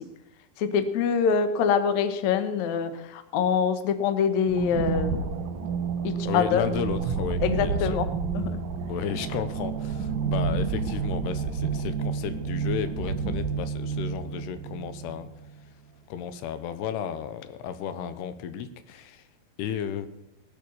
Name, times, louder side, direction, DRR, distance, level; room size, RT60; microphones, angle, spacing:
voice 1, 0.6-5.2 6.0-6.7 7.4-8.1 8.3-8.6, left 7 dB, 70° left, 10 dB, 1.8 m, -25 dB
sound 1, 4.5-15.5, right 5 dB, 65° right, 2.2 m, -30 dB
voice 2, 6.3-8.0 8.9-15.3 16.1-19.3 19.6-20.1, left 8 dB, 90° left, 11 dB, 2.9 m, -33 dB
18.0 x 7.9 x 7.0 m, 0.88 s
omnidirectional pair, 4.6 m